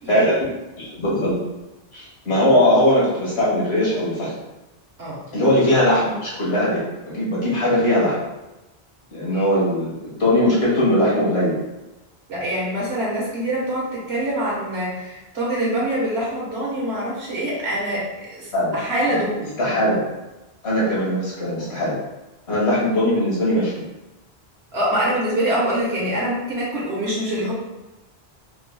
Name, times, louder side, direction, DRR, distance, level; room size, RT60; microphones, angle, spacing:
voice 1, 0.1-0.5 0.8-1.4 1.9-4.3 5.3-8.2 9.1-11.5 18.5-18.8 19.1-19.2 19.6-20.1 20.6-21.9 22.5-23.8, left 1 dB, 85° left, -7 dB, 1.8 m, -20 dB
voice 2, 12.3-19.6 24.7-27.5, right 1 dB, 90° right, -6 dB, 1.6 m, -25 dB
4.5 x 3.3 x 2.2 m, 1.0 s
omnidirectional pair, 1.0 m